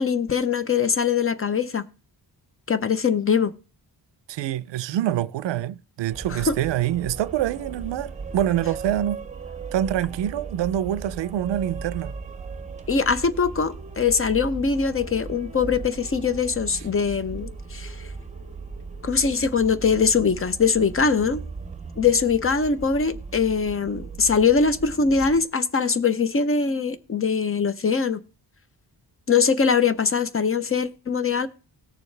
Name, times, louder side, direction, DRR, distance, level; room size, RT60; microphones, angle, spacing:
voice 1, 0.0-1.9 2.7-3.5 6.3-6.6 12.9-18.0 19.0-21.4 22.0-28.2 29.3-31.5, left 5 dB, 30° left, 0.7 m, -22 dB
voice 2, 4.3-9.2 9.7-12.1, right 12 dB, 85° right, 0.5 m, -26 dB
sound 1, 6.1-25.4, right 4 dB, 15° right, 0.9 m, -37 dB
18.0 x 6.9 x 3.3 m
wide cardioid pair, 145°, 42 cm